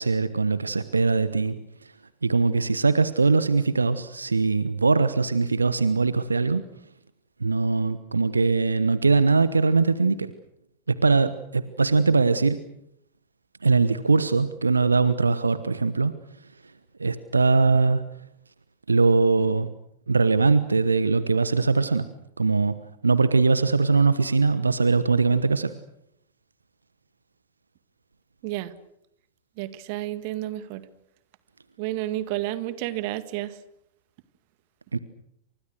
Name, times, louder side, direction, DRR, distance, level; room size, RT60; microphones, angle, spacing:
voice 1, 0.0-1.6 1.8-1.9 2.2-6.6 7.4-10.3 10.9-12.6 13.6-16.1 17.0-18.0 18.9-19.7 20.1-22.1 22.4-22.8 23.0-25.7 34.9-35.0, right 4 dB, 80° right, 14 dB, 1.1 m, -21 dB
voice 2, 29.6-30.8 31.8-33.6, right 15 dB, 45° right, 13 dB, 1.9 m, -31 dB
29.5 x 26.5 x 6.5 m, 0.76 s
figure-of-eight pair, 90°, 0 cm